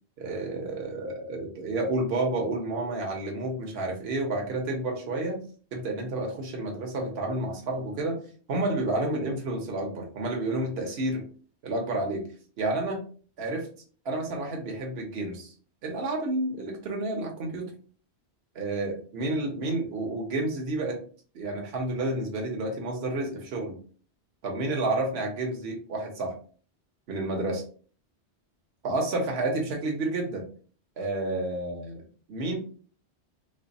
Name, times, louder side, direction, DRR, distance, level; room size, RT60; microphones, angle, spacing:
voice 1, 0.2-5.4 5.7-8.2 8.5-11.2 11.6-12.2 12.6-13.0 13.4-13.7 14.0-15.5 15.8-17.7 18.6-21.0 21.3-23.8 24.4-26.4 27.1-27.6 28.8-30.5 31.0-32.0 32.3-32.6, right 2 dB, 65° right, 1 dB, 1.1 m, -30 dB
3.2 x 2.0 x 3.9 m, 0.41 s
omnidirectional pair, 1.1 m